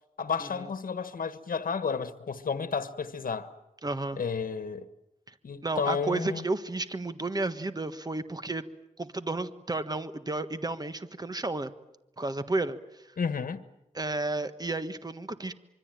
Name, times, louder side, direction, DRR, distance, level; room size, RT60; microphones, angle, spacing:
voice 1, 0.2-3.5 4.2-4.9 5.4-6.4 13.2-13.6, left 6 dB, 85° left, 1.4 m, -32 dB
voice 2, 3.8-4.2 5.6-8.7 9.0-11.7 12.2-12.8 13.9-15.5, right 2 dB, 30° right, 1.5 m, -32 dB
25.5 x 24.0 x 9.1 m
wide cardioid pair, 105°, 14 cm